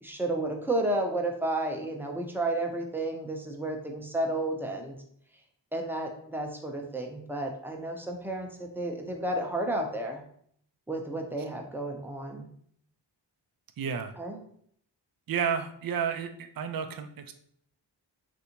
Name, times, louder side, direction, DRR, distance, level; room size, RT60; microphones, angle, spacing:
voice 1, 0.0-4.9 5.7-10.2 10.9-12.4 14.2-14.4, right 1 dB, 5° right, 1 dB, 0.6 m, -32 dB
voice 2, 13.8-14.1 15.3-17.3, right 7 dB, 50° right, 8 dB, 0.5 m, -31 dB
3.3 x 2.6 x 2.9 m, 0.64 s
cardioid pair, 45°, 45 cm